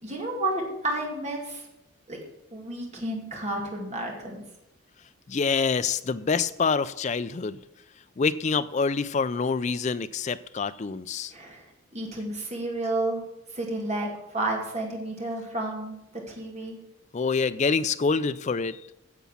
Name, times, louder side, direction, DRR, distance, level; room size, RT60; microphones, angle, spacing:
voice 1, 0.0-1.7 2.1-2.2 2.5-4.4 11.3-11.6 11.9-13.2 13.5-16.8, right 2 dB, 30° right, 0 dB, 2.2 m, -31 dB
voice 2, 5.3-7.6 8.2-11.3 17.1-18.8, left 5 dB, 35° left, 14 dB, 0.4 m, -26 dB
9.7 x 7.2 x 7.1 m, 0.88 s
head